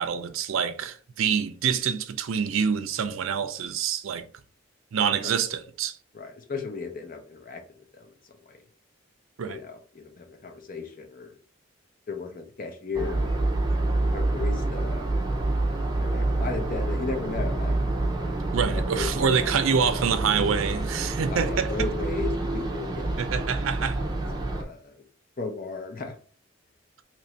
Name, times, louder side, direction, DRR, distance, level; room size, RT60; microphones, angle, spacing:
voice 1, 0.0-4.2 4.9-6.0 9.4-9.6 18.5-21.9 23.2-24.0, right 7 dB, 90° right, 0.4 m, -26 dB
voice 2, 6.1-7.6 7.9-8.1 8.5-8.6 9.5-11.3 12.1-13.5 14.1-15.4 16.0-17.8 18.7-19.5 21.3-23.2 24.0-24.1 24.5-25.0 25.4-26.1, left 4 dB, 45° left, 0.7 m, -35 dB
sound 1, 12.9-24.6, right 2 dB, 20° right, 0.6 m, -27 dB
3.0 x 2.5 x 4.3 m
head